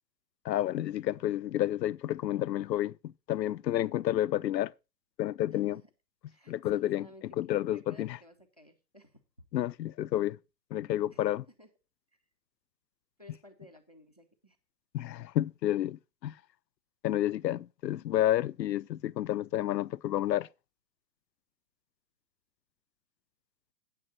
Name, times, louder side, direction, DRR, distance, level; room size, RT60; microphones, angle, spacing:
voice 1, 0.4-4.7 5.2-5.8 6.5-7.1 7.4-8.2 9.5-10.4 10.7-11.4 14.9-16.3 17.0-20.5, left 13 dB, 80° left, 0.5 m, -30 dB
voice 2, 5.5-5.9 6.2-9.2 11.1-11.7 12.1-12.2 13.2-14.6, left 1 dB, 25° left, 0.5 m, -56 dB
9.0 x 9.0 x 4.1 m
hypercardioid pair, 170°, 50 cm